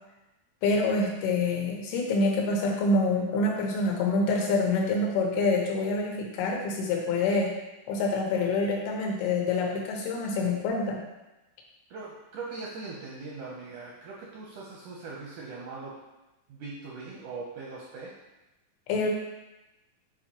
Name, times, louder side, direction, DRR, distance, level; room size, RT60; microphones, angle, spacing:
voice 1, 0.6-7.5 7.9-11.0 18.9-19.1, left 3 dB, 90° left, 0 dB, 2.9 m, -26 dB
voice 2, 11.9-15.9 16.5-18.1, right 3 dB, 80° right, -4 dB, 1.8 m, -40 dB
7.6 x 4.4 x 2.9 m, 1.0 s
omnidirectional pair, 4.3 m